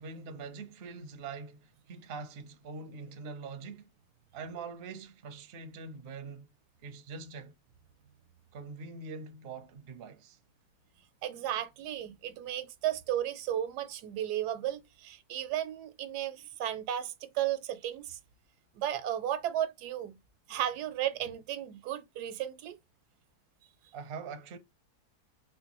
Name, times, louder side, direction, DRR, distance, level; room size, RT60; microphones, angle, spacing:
voice 1, 0.0-3.9 4.3-6.5 6.8-7.5 8.5-10.4 23.9-24.6, right 4 dB, 60° right, 0.6 m, -43 dB
voice 2, 11.2-18.2 18.7-20.2 20.5-22.8, right 11 dB, 90° right, 1.2 m, -34 dB
4.4 x 2.1 x 2.9 m
omnidirectional pair, 1.7 m